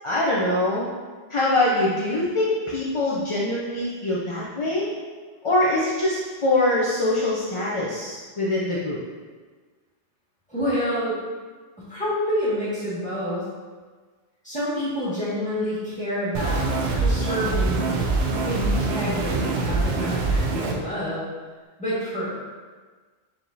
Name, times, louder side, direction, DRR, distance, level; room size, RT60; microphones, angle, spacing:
voice 1, 0.0-0.9 1.3-4.9 5.4-9.0, left 1 dB, 50° left, -6 dB, 0.4 m, -23 dB
voice 2, 10.5-11.2 11.8-13.5 14.4-16.6 16.9-18.1 18.4-21.3 21.8-22.3, equal, 5° left, -10 dB, 1.5 m, -28 dB
sound 1, 16.3-20.7, right 3 dB, 75° right, 0.9 m, -24 dB
4.6 x 3.5 x 2.6 m, 1.4 s
omnidirectional pair, 1.2 m